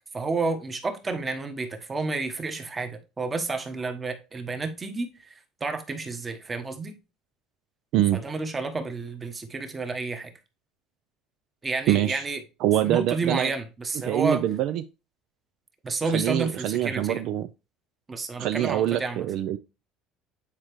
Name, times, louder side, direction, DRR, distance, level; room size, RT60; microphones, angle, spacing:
voice 1, 0.1-5.3 5.6-7.0 8.1-10.3 11.6-12.4 12.8-14.4 15.8-17.2 18.1-19.2, right 3 dB, 20° right, 1.1 m, -30 dB
voice 2, 11.9-12.2 12.6-13.5 14.0-14.8 16.1-17.5 18.4-19.6, right 12 dB, 60° right, 0.4 m, -24 dB
8.6 x 4.5 x 3.0 m
cardioid pair, 145°, 0 cm